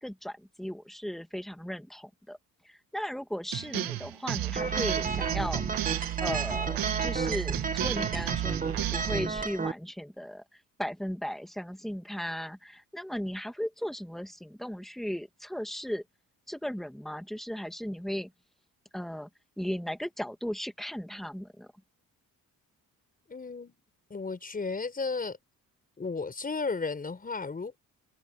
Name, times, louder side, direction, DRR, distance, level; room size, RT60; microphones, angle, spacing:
voice 1, 0.0-2.4 2.6-5.7 6.0-16.0 16.5-18.3 18.9-19.3 19.6-21.7, equal, ahead, 1.9 m, -36 dB
sound 1, 3.5-9.3, right 12 dB, 80° right, 1.5 m, -32 dB
sound 2, 4.6-9.7, right 4 dB, 25° right, 2.1 m, -32 dB
voice 2, 23.3-23.8 24.1-25.4 26.0-27.8, left 4 dB, 25° left, 6.1 m, -34 dB
cardioid pair, 135°, 34 cm